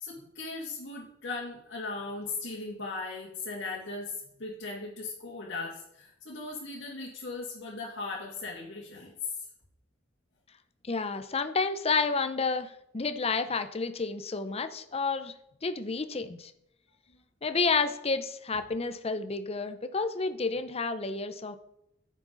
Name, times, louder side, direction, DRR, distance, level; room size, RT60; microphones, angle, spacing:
voice 1, 0.0-4.1 4.4-9.4, left 3 dB, 65° left, -5 dB, 2.3 m, -38 dB
voice 2, 10.9-15.3 15.6-16.5 17.4-21.6, left 4 dB, 30° left, 10 dB, 0.7 m, -30 dB
9.9 x 7.4 x 4.0 m, 0.77 s
head